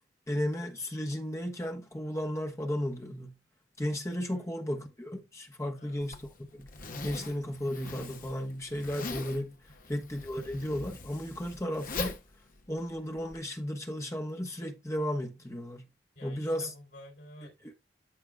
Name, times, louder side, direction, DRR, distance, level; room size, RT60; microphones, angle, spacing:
voice 1, 0.3-3.4 3.8-6.7 7.0-9.6 9.9-12.2 12.7-15.9 16.2-16.7, equal, 15° left, 1.2 m, -34 dB
Zipper (clothing), 6.0-13.4, left 3 dB, 50° left, 1.1 m, -41 dB
voice 2, 16.1-17.7, equal, 80° left, 3.1 m, -51 dB
13.5 x 4.8 x 2.4 m
head